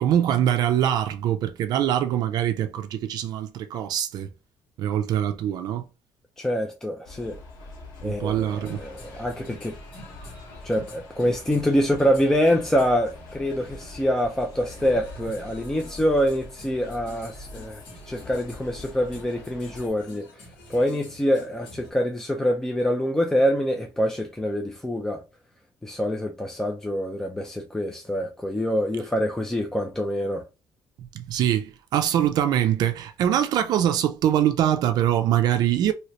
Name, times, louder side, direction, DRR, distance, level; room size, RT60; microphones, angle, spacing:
voice 1, 0.0-4.3 4.8-5.8 8.0-8.8 31.1-35.9, right 10 dB, 55° right, 0.4 m, -23 dB
voice 2, 6.4-7.4 8.0-9.8 10.6-20.4 20.7-25.2 25.8-30.4, equal, 5° left, 0.4 m, -25 dB
sound 1, 7.0-19.9, left 2 dB, 55° left, 1.3 m, -44 dB
sound 2, 8.5-21.9, left 1 dB, 85° left, 1.6 m, -47 dB
3.1 x 2.8 x 2.9 m
cardioid pair, 155°, 8 cm